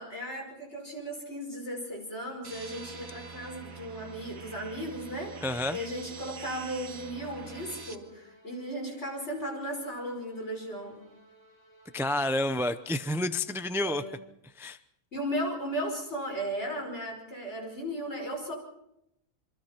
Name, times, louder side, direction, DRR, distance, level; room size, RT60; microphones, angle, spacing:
voice 1, 0.0-5.4 5.7-11.0 13.8-14.2 15.1-18.5, equal, 50° left, 1 dB, 5.6 m, -36 dB
sound 1, 2.4-8.0, right 5 dB, 80° right, 2.0 m, -45 dB
sound 2, 3.8-14.2, right 1 dB, 30° left, 7.5 m, -60 dB
voice 2, 5.4-5.8 11.9-14.0 14.6-14.8, left 1 dB, 5° right, 10 dB, 0.4 m, -29 dB
27.0 x 24.5 x 4.4 m, 0.82 s
omnidirectional pair, 1.4 m